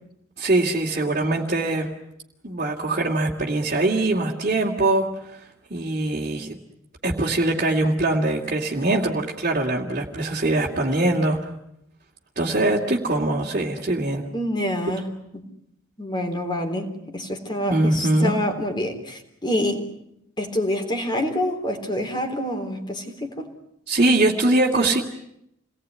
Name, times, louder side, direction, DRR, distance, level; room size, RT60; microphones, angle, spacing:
voice 1, 0.4-1.9 2.4-5.4 5.7-6.6 7.0-11.4 12.4-14.2 17.7-18.4 23.9-25.0, right 2 dB, 40° right, -3 dB, 2.5 m, -22 dB
voice 2, 14.3-15.1 15.3-15.4 16.0-19.8 20.4-23.5, left 1 dB, 20° left, 5 dB, 3.7 m, -27 dB
29.0 x 20.0 x 9.7 m, 0.80 s
head